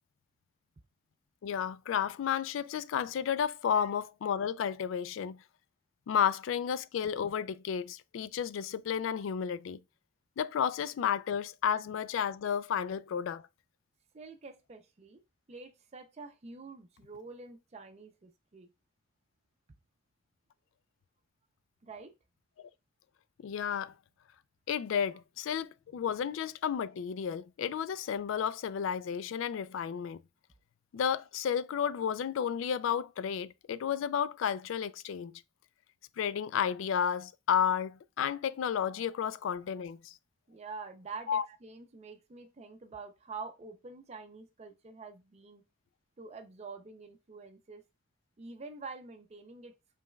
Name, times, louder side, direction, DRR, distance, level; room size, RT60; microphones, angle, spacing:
voice 1, 1.4-5.4 6.1-9.8 10.4-13.4 22.6-22.7 23.4-23.9 24.7-30.2 30.9-35.4 36.2-40.1 41.3-41.4, left 8 dB, 85° left, 0.3 m, -32 dB
voice 2, 14.1-15.2 15.5-18.7 21.8-22.1 40.5-45.6 46.2-47.8 48.4-49.7, right 4 dB, 35° right, 0.5 m, -47 dB
5.1 x 3.3 x 2.2 m
head